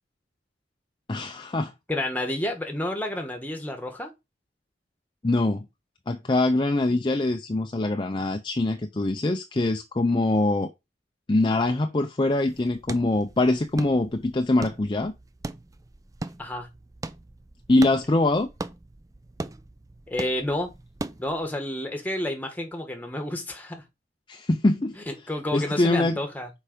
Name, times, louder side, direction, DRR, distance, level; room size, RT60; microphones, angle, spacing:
voice 1, 1.1-1.7 5.2-5.7 6.1-10.7 11.3-15.1 17.7-18.5 24.3-25.0 25.5-26.2, left 2 dB, 25° left, 0.6 m, -23 dB
voice 2, 1.9-4.1 16.4-16.7 20.1-20.7 21.2-23.8 25.1-26.5, left 1 dB, 10° left, 1.5 m, -30 dB
sound 1, 12.5-21.5, right 2 dB, 20° right, 0.5 m, -40 dB
6.7 x 4.8 x 5.1 m
head